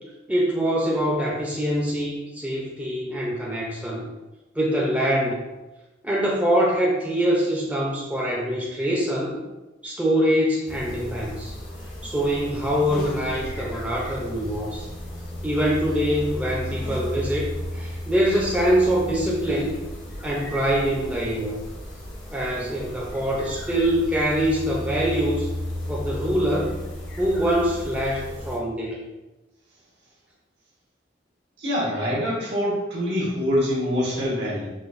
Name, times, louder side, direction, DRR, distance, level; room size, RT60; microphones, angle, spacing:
voice 1, 0.3-4.1 4.6-5.4 6.0-9.4 9.8-11.6 12.0-14.9 15.4-19.7 20.2-21.6 22.3-25.5 25.9-26.7 27.2-29.0, equal, 5° right, -4 dB, 0.4 m, -24 dB
sound 1, 10.7-28.6, left 1 dB, 80° left, 1.0 m, -34 dB
voice 2, 31.6-34.7, equal, 65° right, -5 dB, 1.2 m, -25 dB
4.9 x 2.1 x 2.5 m, 1.1 s
head